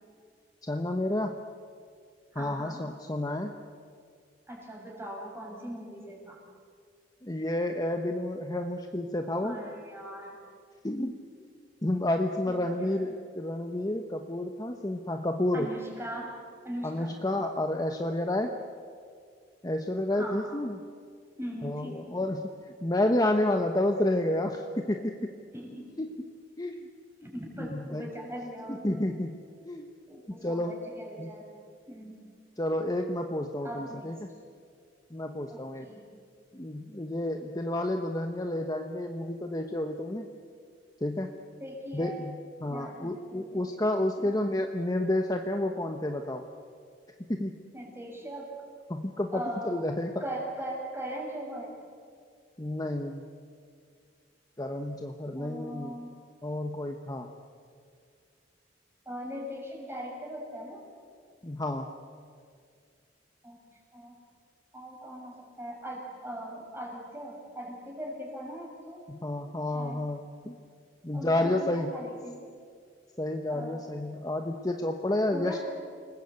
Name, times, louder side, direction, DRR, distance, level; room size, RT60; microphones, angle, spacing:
voice 1, 0.6-1.3 2.4-3.5 7.2-9.6 10.8-11.2 11.8-15.7 16.8-18.5 19.6-20.8 21.6-22.5 22.8-25.1 26.0-26.1 26.6-26.9 27.2-27.3 27.6-28.0 28.7-29.4 29.6-29.9 30.4-30.7 31.2-31.3 32.6-34.2 35.1-35.9 36.5-40.3 41.0-41.3 41.9-46.4 47.3-47.5 48.9-50.1 52.6-53.2 54.6-56.0 56.4-57.3 61.4-61.9 69.1-70.6 71.0-71.9 73.2-75.6, left 1 dB, 20° left, 4 dB, 1.0 m, -30 dB
voice 2, 2.3-2.8 4.5-6.4 9.4-10.4 12.4-13.1 15.5-16.3 16.6-17.2 20.2-20.6 21.4-22.3 25.5-26.0 27.2-29.2 30.1-31.5 31.9-32.2 33.6-34.1 35.5-36.0 41.6-42.2 42.7-43.6 44.2-44.3 47.7-48.5 49.3-49.8 50.2-51.8 55.3-56.1 59.0-60.8 63.4-63.6 63.9-64.1 64.7-69.0 69.7-70.0 71.1-72.4 73.5-73.9 75.3-75.6, equal, 15° right, -2 dB, 6.4 m, -40 dB
29.0 x 20.0 x 8.2 m, 2.2 s
head